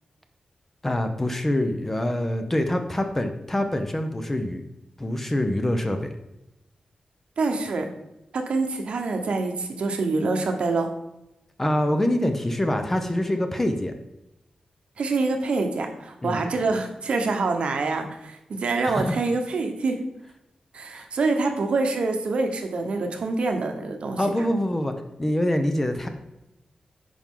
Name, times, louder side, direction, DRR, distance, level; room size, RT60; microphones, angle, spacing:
voice 1, 0.8-4.6 5.0-6.1 11.6-13.9 16.2-16.4 18.8-19.2 20.9-21.1 24.2-24.9 25.2-26.1, left 1 dB, 15° left, 6 dB, 0.7 m, -25 dB
voice 2, 7.4-7.9 8.3-10.9 15.0-20.0 20.7-24.2, right 3 dB, 65° right, 4 dB, 1.1 m, -26 dB
9.4 x 5.6 x 3.8 m, 0.89 s
wide cardioid pair, 175°, 2 cm